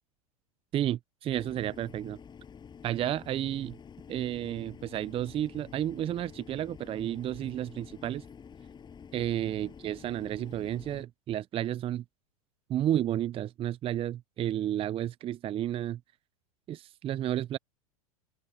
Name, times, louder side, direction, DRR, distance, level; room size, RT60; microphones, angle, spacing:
voice 1, 0.7-2.2 2.8-3.7 4.1-8.2 9.1-12.0 12.7-16.0 16.7-17.6, right 12 dB, 30° right, 0.7 m, -32 dB
sound 1, 1.3-11.0, left 6 dB, 25° left, 7.2 m, -49 dB
open air
hypercardioid pair, 90°, 19 cm